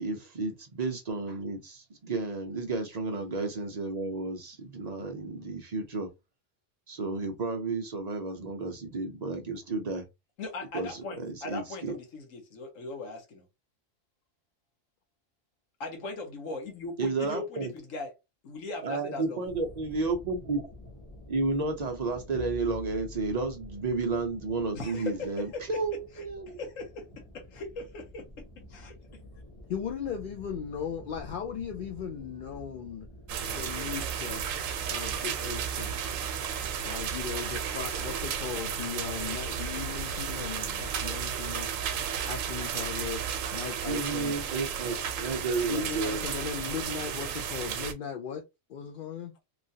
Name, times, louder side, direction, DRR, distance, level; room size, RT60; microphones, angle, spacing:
voice 1, 0.0-6.1 6.9-10.1 10.7-12.0 17.0-17.7 18.8-20.6 21.3-26.6 43.9-46.2, right 3 dB, 50° right, 0.5 m, -32 dB
voice 2, 10.4-13.4 15.8-18.1 18.4-19.4 24.7-25.8 26.2-28.4 28.7-28.9, left 3 dB, 85° left, 1.3 m, -39 dB
sound 1, 19.4-37.5, left 1 dB, 30° left, 0.8 m, -50 dB
sound 2, 22.3-25.4, left 1 dB, 10° left, 0.4 m, -46 dB
voice 3, 29.7-33.1 33.4-34.4 34.9-36.0 36.8-41.8 42.2-43.2 43.5-44.3 45.7-48.4 48.7-49.3, left 7 dB, 60° left, 0.5 m, -37 dB
sound 3, 33.3-47.9, right 7 dB, 85° right, 1.0 m, -33 dB
3.0 x 2.4 x 2.7 m
omnidirectional pair, 1.3 m